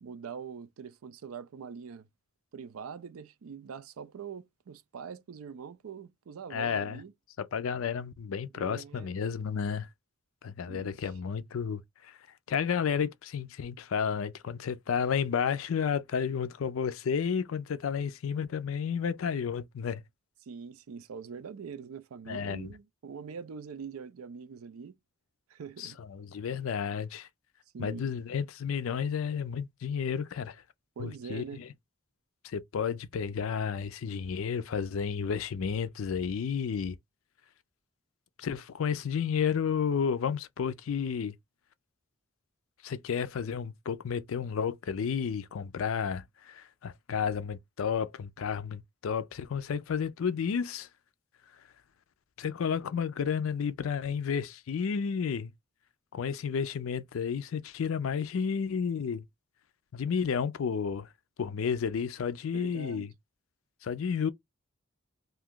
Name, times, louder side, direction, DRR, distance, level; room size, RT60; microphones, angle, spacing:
voice 1, 0.0-2.1 2.5-7.1 8.5-9.2 10.7-11.1 20.4-25.0 25.5-26.0 27.7-28.1 31.0-31.6 62.5-63.1, right 6 dB, 80° right, 0.4 m, -43 dB
voice 2, 6.5-7.0 7.4-9.9 10.4-12.2 12.5-20.0 22.3-22.7 25.8-27.3 27.8-30.6 31.0-31.7 32.4-37.0 38.4-41.3 42.8-50.9 52.4-55.5 56.1-59.2 59.9-61.1 61.4-63.1 63.8-64.3, left 6 dB, 70° left, 0.4 m, -32 dB
2.6 x 2.3 x 3.5 m
head